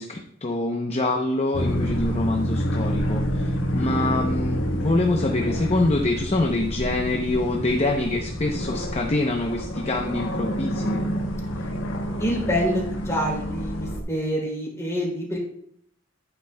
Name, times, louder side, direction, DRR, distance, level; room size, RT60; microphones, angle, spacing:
voice 1, 0.0-11.0, left 2 dB, 35° left, 2 dB, 0.7 m, -25 dB
sound 1, 1.5-14.0, equal, 75° left, 1.3 m, -28 dB
voice 2, 12.2-15.4, equal, 15° left, -3 dB, 3.0 m, -26 dB
10.5 x 9.0 x 2.2 m, 0.71 s
head